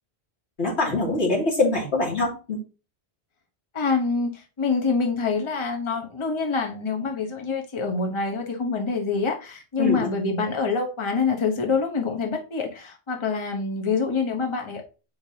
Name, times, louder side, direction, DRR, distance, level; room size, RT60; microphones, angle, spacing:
voice 1, 0.6-2.6 9.8-10.1, left 2 dB, 75° left, 2.9 m, -23 dB
voice 2, 3.7-14.8, left 4 dB, 30° left, 1.0 m, -26 dB
7.9 x 4.9 x 2.8 m
omnidirectional pair, 1.1 m